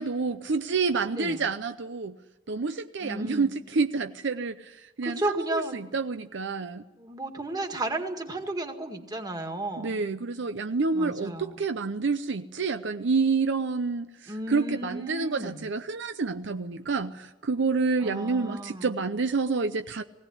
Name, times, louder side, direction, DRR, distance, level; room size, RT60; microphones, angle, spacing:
voice 1, 0.0-2.2 2.5-6.8 9.8-20.0, right 4 dB, 65° right, 9 dB, 0.7 m, -28 dB
voice 2, 1.1-1.5 3.0-3.6 5.0-5.8 7.0-10.0 10.9-11.6 14.3-15.7 18.0-19.0, right 1 dB, 20° right, 4 dB, 2.1 m, -33 dB
20.5 x 17.0 x 9.9 m, 1.0 s
head